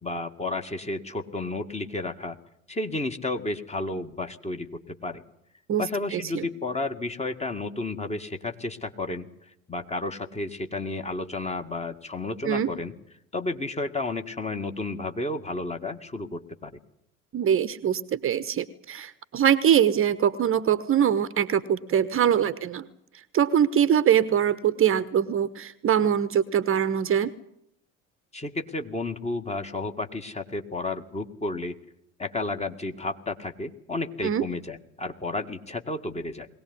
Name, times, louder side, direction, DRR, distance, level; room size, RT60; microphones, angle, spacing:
voice 1, 0.0-2.4 2.7-5.2 5.8-9.3 9.7-12.9 13.3-16.7 28.3-31.8 32.2-36.5, left 2 dB, 15° left, 6 dB, 2.0 m, -32 dB
voice 2, 6.1-6.5 12.4-12.7 17.3-22.9 23.3-27.3 34.2-34.4, right 9 dB, 30° right, 16 dB, 1.1 m, -23 dB
21.5 x 18.0 x 9.7 m, 0.75 s
figure-of-eight pair, 70°, 41 cm